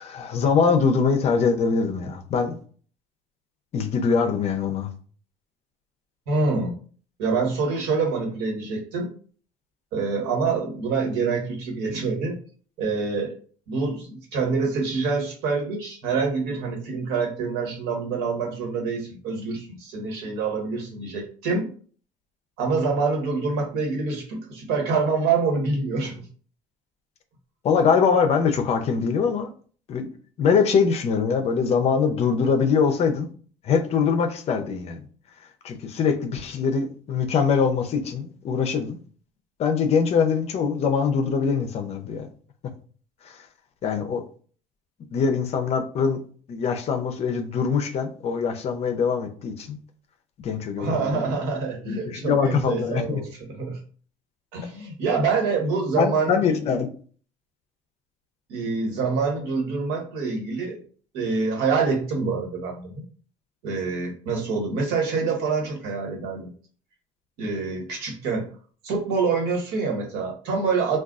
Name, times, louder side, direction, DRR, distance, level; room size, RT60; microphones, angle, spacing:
voice 1, 0.0-2.6 3.7-4.9 27.6-29.5 29.9-30.1 30.4-33.3 33.6-35.0 35.6-39.0 39.6-42.3 43.8-44.2 45.1-46.2 46.5-49.8 50.4-51.3 51.9-53.2 56.0-56.9, left 6 dB, 45° left, 0.5 m, -23 dB
voice 2, 6.3-6.7 7.2-9.1 9.9-12.4 12.8-13.3 13.7-21.7 22.6-26.2 50.8-53.8 54.5-56.6 58.5-60.8 61.1-63.0 63.6-66.5 67.4-68.5 68.8-71.0, right 4 dB, 90° right, 1.2 m, -26 dB
3.7 x 2.3 x 2.4 m
cardioid pair, 125°, 15 cm